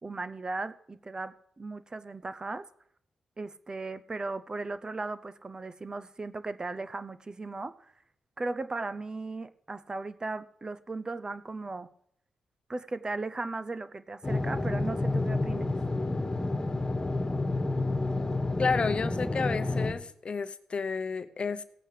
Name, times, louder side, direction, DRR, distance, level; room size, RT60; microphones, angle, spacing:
voice 1, 0.0-2.7 3.4-7.7 8.4-11.9 12.7-15.8, right 3 dB, 35° right, 13 dB, 0.6 m, -37 dB
sound 1, 14.2-19.9, left 2 dB, 25° left, 1.7 m, -29 dB
voice 2, 18.6-21.6, left 5 dB, 50° left, 12 dB, 0.7 m, -31 dB
18.0 x 8.7 x 3.3 m, 0.69 s
supercardioid pair, 50°, 2 cm